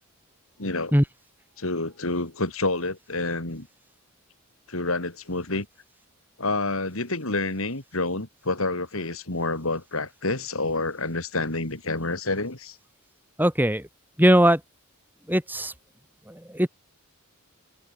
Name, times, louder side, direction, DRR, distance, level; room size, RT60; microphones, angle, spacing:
voice 1, 0.6-0.9 1.6-3.7 4.7-5.7 6.4-12.8, left 2 dB, 65° left, 3.5 m, -28 dB
voice 2, 13.4-13.8 14.2-14.6 15.3-15.7 16.3-16.7, equal, 10° right, 7.2 m, -20 dB
open air
head